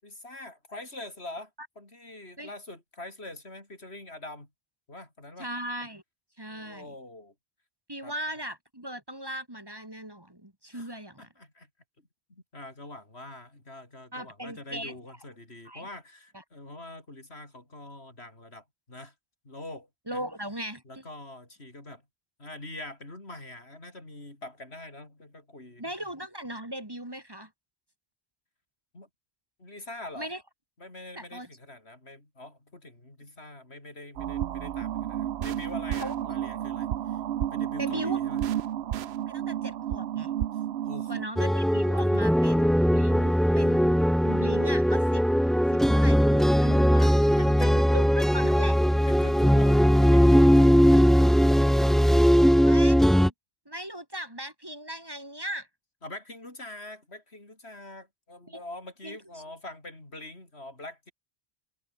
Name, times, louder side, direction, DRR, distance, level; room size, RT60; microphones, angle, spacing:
voice 1, 0.0-1.5 1.8-4.5 4.9-5.5 6.5-7.3 8.0-8.1 10.7-10.9 11.2-11.7 12.3-19.1 19.4-20.2 20.9-22.0 22.4-25.8 28.9-29.1 29.6-30.3 30.8-37.2 37.5-38.4 40.8-41.3 42.4-42.5 47.3-47.9 49.1-51.0 56.0-61.1, left 2 dB, 85° left, 5.8 m, -44 dB
voice 2, 5.4-6.0 6.4-6.9 7.9-11.3 14.1-15.0 15.6-15.9 16.3-16.4 20.1-21.0 25.8-27.5 30.1-30.4 31.2-31.5 36.0-36.1 37.8-38.3 39.3-40.3 41.1-45.2 45.7-47.1 47.6-48.8 50.9-51.0 52.5-53.3 53.7-55.7 58.5-58.6 59.0-59.4, right 1 dB, 20° right, 2.6 m, -38 dB
sound 1, 34.2-41.3, right 11 dB, 80° right, 0.9 m, -31 dB
sound 2, 41.4-53.3, equal, ahead, 0.7 m, -20 dB
omnidirectional pair, 1.1 m